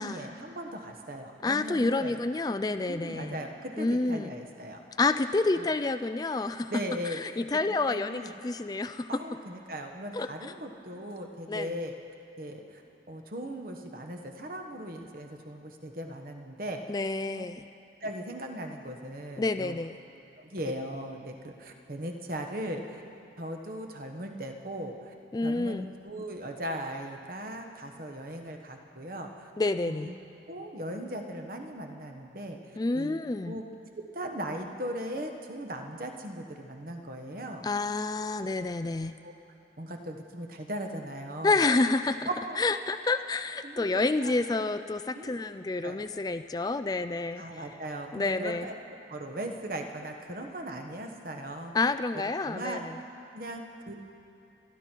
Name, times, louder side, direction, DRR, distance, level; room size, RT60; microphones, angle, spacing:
voice 1, 0.0-2.2 2.8-4.8 5.6-5.7 6.7-7.4 7.9-8.4 9.1-11.9 12.4-12.8 13.1-16.8 17.3-17.4 18.0-19.8 20.4-23.0 23.4-25.1 25.4-29.5 29.9-30.1 30.5-33.1 33.4-33.6 33.9-37.6 39.2-39.3 39.8-41.7 42.3-42.6 43.6-44.7 45.1-45.3 45.8-46.1 47.4-48.8 49.1-51.7 52.4-52.8 53.3-53.9, right 1 dB, 50° right, 4 dB, 1.3 m, -38 dB
voice 2, 1.4-3.4 3.8-4.3 5.0-6.7 7.1-9.1 10.1-10.5 11.5-11.7 16.9-17.7 19.4-20.0 25.3-25.9 29.6-30.1 32.8-33.6 37.6-39.1 41.4-42.3 42.6-47.4 48.1-48.7 51.7-53.0, left 3 dB, 20° left, 10 dB, 0.3 m, -29 dB
27.0 x 11.5 x 4.6 m, 2.7 s
head